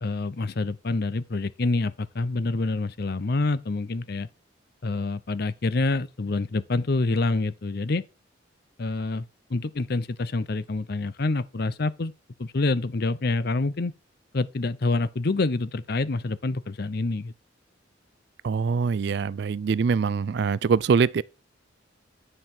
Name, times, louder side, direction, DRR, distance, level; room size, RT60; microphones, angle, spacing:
voice 1, 0.0-4.3 4.8-8.0 8.8-12.1 12.4-13.9 14.3-17.3, left 3 dB, 55° left, 0.6 m, -27 dB
voice 2, 18.4-21.2, right 5 dB, 60° right, 0.3 m, -23 dB
9.7 x 5.6 x 4.5 m
head